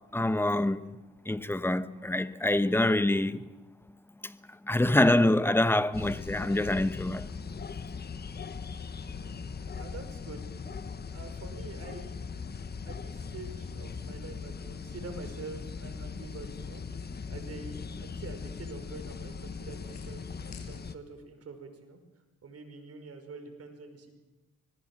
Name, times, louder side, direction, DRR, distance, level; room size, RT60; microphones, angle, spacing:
voice 1, 0.1-0.8 1.2-3.4 4.2-4.4 4.7-7.3, left 1 dB, 5° left, 1.2 m, -25 dB
sound 1, 5.9-20.9, left 5 dB, 35° left, 1.2 m, -40 dB
voice 2, 9.0-9.4 9.7-10.4 11.1-12.4 12.8-16.8 17.3-22.0 22.4-24.1, right 3 dB, 50° right, 5.4 m, -46 dB
sound 2, 17.8-21.2, left 4 dB, 65° left, 6.1 m, -55 dB
25.5 x 20.0 x 7.5 m
cardioid pair, 90°, 30 cm